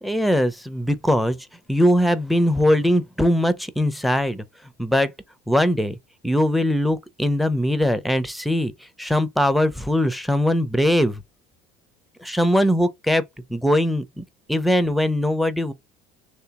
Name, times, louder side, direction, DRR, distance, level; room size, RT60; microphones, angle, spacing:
voice 1, 0.0-1.4 1.7-4.4 4.8-5.1 5.5-6.0 6.2-8.7 9.0-11.2 12.2-13.2 13.5-14.2 14.5-15.7, equal, ahead, 0.5 m, -21 dB
3.5 x 3.2 x 2.9 m
supercardioid pair, 110°, 19 cm